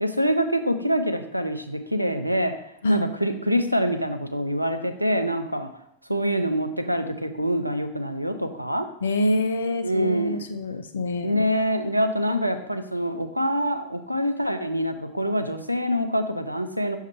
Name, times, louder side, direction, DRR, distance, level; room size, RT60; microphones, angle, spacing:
voice 1, 0.0-2.5 2.9-5.7 6.1-8.9 9.8-10.4 11.2-17.0, equal, 90° right, 7 dB, 0.5 m, -25 dB
voice 2, 9.0-11.4, left 1 dB, 65° left, 8 dB, 0.6 m, -25 dB
6.4 x 3.6 x 4.3 m, 0.80 s
figure-of-eight pair, 90°, 0 cm